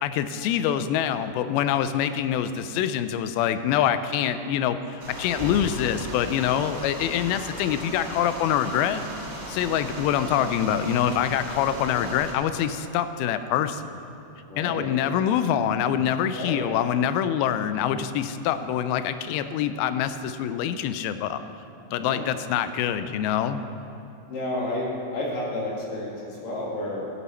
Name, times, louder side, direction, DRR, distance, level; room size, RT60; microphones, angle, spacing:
voice 1, 0.0-9.0 9.5-13.9 14.6-21.4 21.9-23.6, left 9 dB, 90° left, 11 dB, 2.4 m, -25 dB
sound 1, 5.0-12.3, equal, 35° right, 2.3 m, -37 dB
voice 2, 14.5-14.9 16.3-16.6 22.0-22.3 24.3-27.0, left 1 dB, 65° left, -4 dB, 3.7 m, -31 dB
14.5 x 8.3 x 4.4 m, 2.7 s
omnidirectional pair, 4.2 m